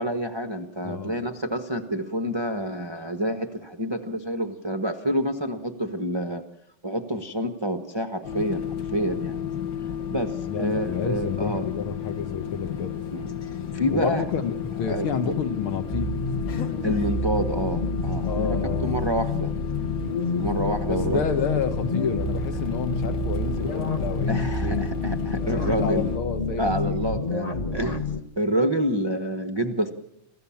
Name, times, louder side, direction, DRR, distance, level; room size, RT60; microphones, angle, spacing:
voice 1, 0.0-6.5 6.8-9.4 10.1-11.7 13.1-14.2 14.9-15.3 16.8-18.6 18.8-19.5 20.4-21.2 24.3-26.1 26.6-28.1 28.4-29.9, equal, 25° right, 5 dB, 0.5 m, -28 dB
voice 2, 0.8-1.2 10.5-13.0 13.9-16.2 18.2-19.0 20.9-24.9 25.5-27.0, left 6 dB, 75° left, 8 dB, 2.3 m, -30 dB
sound 1, 8.2-26.2, left 8 dB, 45° left, 1.6 m, -32 dB
sound 2, 15.9-28.2, left 2 dB, 25° left, 0.8 m, -29 dB
sound 3, 22.2-27.4, right 7 dB, 50° right, 1.0 m, -41 dB
28.0 x 15.0 x 7.2 m, 0.82 s
omnidirectional pair, 2.4 m